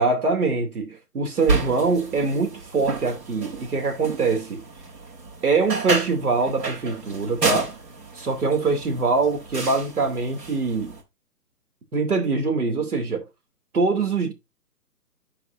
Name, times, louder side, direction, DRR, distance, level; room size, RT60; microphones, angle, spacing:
voice 1, 0.0-4.6 5.4-7.7 8.2-11.0 11.9-13.2 13.7-14.3, right 4 dB, 65° right, 2.8 m, -23 dB
sound 1, 1.4-11.0, right 4 dB, 90° right, 3.2 m, -31 dB
11.0 x 4.9 x 2.6 m
hypercardioid pair, 175°, 48 cm